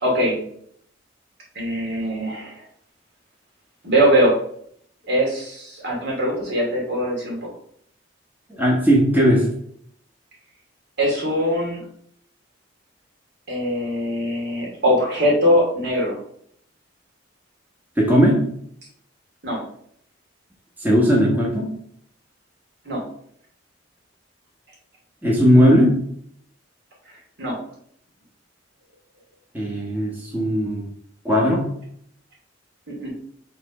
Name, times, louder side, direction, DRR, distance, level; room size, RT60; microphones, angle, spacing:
voice 1, 0.0-0.4 1.5-2.6 3.8-4.4 5.0-7.4 11.0-11.8 13.5-16.2 19.4-19.6 22.8-23.0 27.4-27.6 32.9-33.1, equal, 60° right, -3 dB, 2.4 m, -21 dB
voice 2, 8.6-9.5 18.0-18.4 20.8-21.7 25.2-26.0 29.5-30.9 31.2-31.6, equal, 10° right, -4 dB, 1.2 m, -17 dB
6.0 x 3.3 x 5.3 m, 0.65 s
head